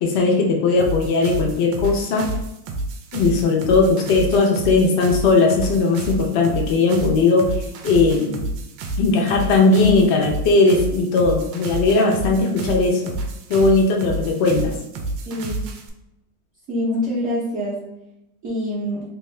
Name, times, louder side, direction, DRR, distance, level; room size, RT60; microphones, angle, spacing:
voice 1, 0.0-2.3 3.1-7.4 7.8-8.3 9.0-13.1 13.5-14.7, left 3 dB, 65° left, 0 dB, 0.6 m, -18 dB
sound 1, 0.8-15.9, right 2 dB, 80° right, 1.3 m, -29 dB
voice 2, 15.3-15.7 16.7-17.8 18.4-19.0, left 1 dB, 50° right, -7 dB, 1.0 m, -25 dB
3.5 x 2.7 x 3.2 m, 0.88 s
omnidirectional pair, 2.0 m